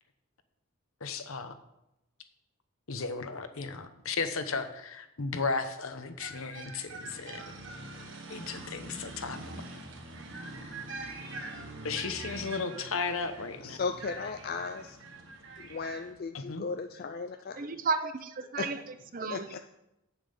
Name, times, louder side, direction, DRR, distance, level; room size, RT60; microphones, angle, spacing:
voice 1, 1.0-1.5 2.9-7.5 8.3-9.4 10.3-10.8 11.8-13.8 16.3-16.7, left 4 dB, 70° left, 9 dB, 0.9 m, -35 dB
sound 1, 6.2-16.1, right 2 dB, 55° right, 1.5 m, -44 dB
voice 2, 13.6-15.0 15.6-17.6 18.6-18.7 19.3-19.6, left 4 dB, 45° left, 7 dB, 0.4 m, -36 dB
voice 3, 17.6-18.8 19.1-19.6, right 4 dB, 40° right, 10 dB, 0.6 m, -33 dB
8.6 x 7.1 x 5.4 m, 0.88 s
head